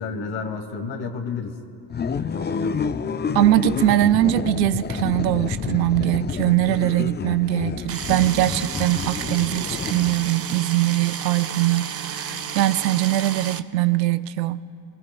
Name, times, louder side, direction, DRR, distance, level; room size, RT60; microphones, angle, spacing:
voice 1, 0.0-1.6 2.3-2.9, left 5 dB, 60° left, 2.5 m, -31 dB
sound 1, 1.9-10.5, left 6 dB, 20° left, 0.6 m, -29 dB
voice 2, 3.3-14.6, right 15 dB, 85° right, 0.6 m, -21 dB
sound 2, 7.9-13.6, right 7 dB, 30° right, 0.7 m, -32 dB
29.0 x 19.0 x 2.3 m
hypercardioid pair, 50°, 50 cm